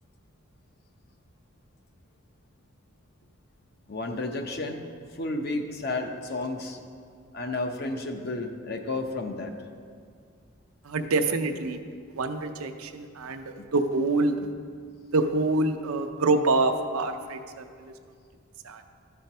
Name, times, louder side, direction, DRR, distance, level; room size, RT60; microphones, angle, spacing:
voice 1, 3.9-4.8 5.1-6.8 7.3-9.5 13.6-13.7, left 2 dB, 45° left, 4 dB, 0.7 m, -32 dB
voice 2, 10.8-11.8 12.1-13.4 13.7-14.3 15.1-17.9 18.6-18.8, right 3 dB, 85° right, 7 dB, 0.6 m, -26 dB
12.0 x 4.4 x 5.4 m, 2.2 s
head